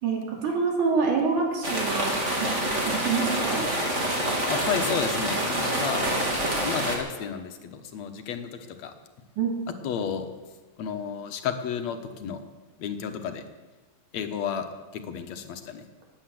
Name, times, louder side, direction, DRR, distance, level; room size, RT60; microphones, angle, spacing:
voice 1, 0.0-2.6 2.9-3.7 9.4-9.6, right 5 dB, 75° right, 0 dB, 4.4 m, -26 dB
sound 1, 1.6-7.0, right 1 dB, 25° right, 2.8 m, -27 dB
voice 2, 4.5-6.2 6.6-8.5 8.8-8.9 9.8-10.3 10.8-12.4 12.8-13.4 14.1-14.7 14.9-15.8, left 7 dB, 65° left, 7 dB, 2.3 m, -32 dB
19.5 x 9.1 x 7.7 m, 1.3 s
omnidirectional pair, 3.5 m